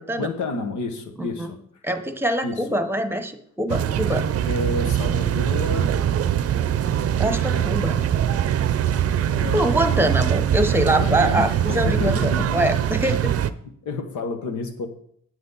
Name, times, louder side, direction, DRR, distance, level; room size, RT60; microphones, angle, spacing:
voice 1, 0.2-1.6 2.4-2.6 4.5-5.9 7.5-7.7 8.1-8.2 8.9-9.0 9.3-9.6 10.9-12.6 13.8-14.9, left 3 dB, 75° left, 7 dB, 1.5 m, -29 dB
voice 2, 1.8-4.2 7.2-8.0 9.5-13.3, right 1 dB, 5° right, 9 dB, 1.1 m, -24 dB
sound 1, 3.7-13.5, right 10 dB, 50° right, 0.6 m, -22 dB
10.5 x 7.8 x 4.1 m, 0.66 s
cardioid pair, 90°, 30 cm